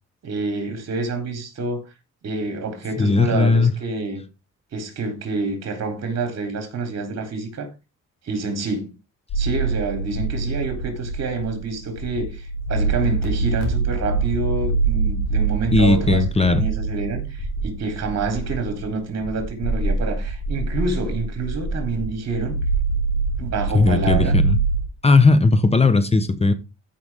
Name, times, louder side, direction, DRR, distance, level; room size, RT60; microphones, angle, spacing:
voice 1, 0.2-1.8 2.2-4.2 4.7-7.7 8.2-9.0 9.4-22.6 23.4-24.4, right 3 dB, 60° right, 3.9 m, -27 dB
voice 2, 3.0-3.7 15.7-16.6 23.7-24.6 25.0-26.5, left 3 dB, 20° left, 1.3 m, -17 dB
sound 1, 9.3-24.8, right 3 dB, 85° left, 4.5 m, -25 dB
14.5 x 5.9 x 3.7 m
cardioid pair, 90°, 30 cm